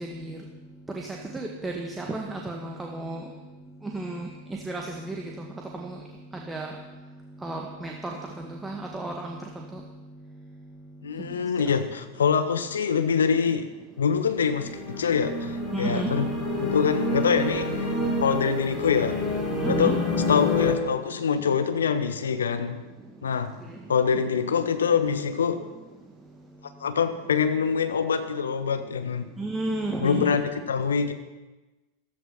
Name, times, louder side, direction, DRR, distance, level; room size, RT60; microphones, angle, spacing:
voice 1, 1.3-3.2 3.9-4.3 4.7-5.2 5.8-5.9 6.5-6.7 7.4-7.9 8.4-9.4 15.7-16.1 19.6-19.9 29.4-30.4, right 2 dB, 10° right, 0 dB, 1.8 m, -32 dB
voice 2, 11.0-13.7 14.0-16.3 16.6-17.9 18.2-19.2 19.7-19.9 20.3-22.8 23.2-23.5 23.9-25.6 26.8-29.3 30.0-30.4 30.7-31.1, left 6 dB, 70° left, 9 dB, 1.4 m, -25 dB
sound 1, 14.2-20.7, left 2 dB, 10° left, 6.6 m, -28 dB
15.0 x 14.0 x 5.8 m, 1.1 s
figure-of-eight pair, 90°, 0 cm